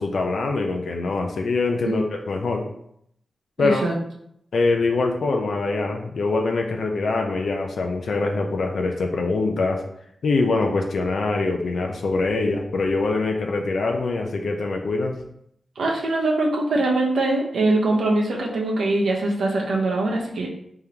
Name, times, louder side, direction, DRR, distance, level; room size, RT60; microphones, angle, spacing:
voice 1, 0.0-2.7 3.6-3.9 4.5-9.8 10.2-15.2, left 3 dB, 75° left, 2 dB, 0.5 m, -24 dB
voice 2, 3.6-3.9 15.8-20.5, right 2 dB, 85° right, -1 dB, 0.8 m, -22 dB
3.6 x 3.4 x 2.9 m, 0.73 s
cardioid pair, 65°, 0 cm